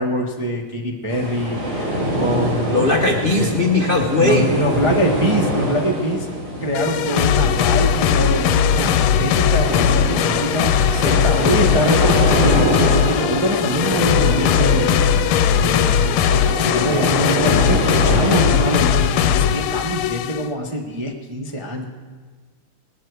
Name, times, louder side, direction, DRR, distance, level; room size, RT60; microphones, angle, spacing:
voice 1, 0.0-3.7 4.2-6.3 6.6-21.9, equal, 30° right, 0 dB, 0.5 m, -24 dB
sound 1, 1.1-19.5, right 1 dB, 70° right, 4.5 m, -24 dB
voice 2, 2.7-4.5 10.9-11.2, left 2 dB, 55° left, 2 dB, 0.6 m, -19 dB
sound 2, 6.7-20.5, left 9 dB, 85° left, 1.5 m, -18 dB
19.0 x 13.0 x 4.7 m, 1.5 s
omnidirectional pair, 2.4 m